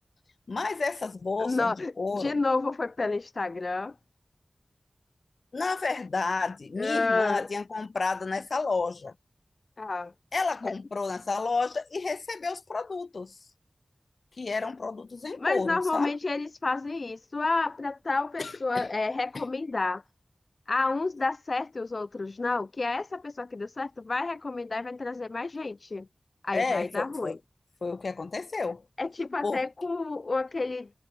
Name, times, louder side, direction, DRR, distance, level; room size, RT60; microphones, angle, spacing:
voice 1, 0.5-2.4 5.5-9.1 10.3-13.4 14.4-16.1 18.4-18.9 19.3-19.4 26.5-27.4 27.8-28.8 29.4-29.6, left 4 dB, 80° left, 5.4 m, -31 dB
voice 2, 1.4-3.9 6.8-7.5 9.8-10.1 10.6-10.7 15.4-20.0 20.7-26.1 26.4-27.4 29.0-31.0, left 3 dB, 65° left, 0.9 m, -30 dB
wide cardioid pair, 55°, 0 cm